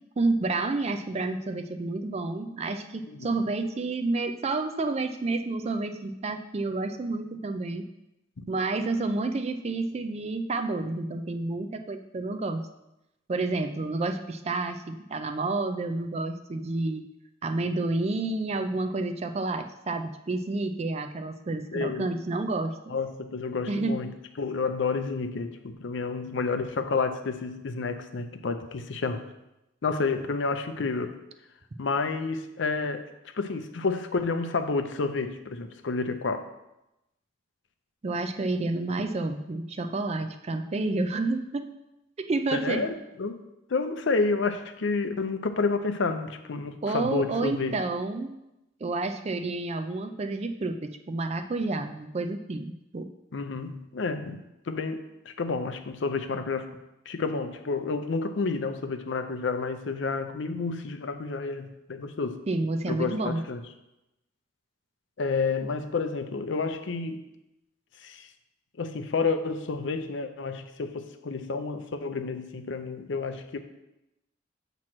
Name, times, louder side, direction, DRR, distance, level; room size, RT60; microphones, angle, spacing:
voice 1, 0.2-7.9 8.5-12.6 13.3-17.0 17.4-22.7 23.7-24.0 38.0-41.7 42.2-42.9 46.8-48.3 48.8-53.1 62.5-63.4, right 3 dB, 35° right, 7 dB, 0.4 m, -29 dB
voice 2, 3.1-3.4 8.4-8.5 21.7-22.1 22.9-29.3 29.8-31.2 31.8-33.1 33.3-36.5 42.5-43.4 43.7-47.8 53.3-56.8 57.1-62.4 62.9-63.6 65.2-67.2 68.0-68.3 68.8-73.6, left 4 dB, 65° left, 8 dB, 0.5 m, -30 dB
7.5 x 3.0 x 5.9 m, 0.92 s
head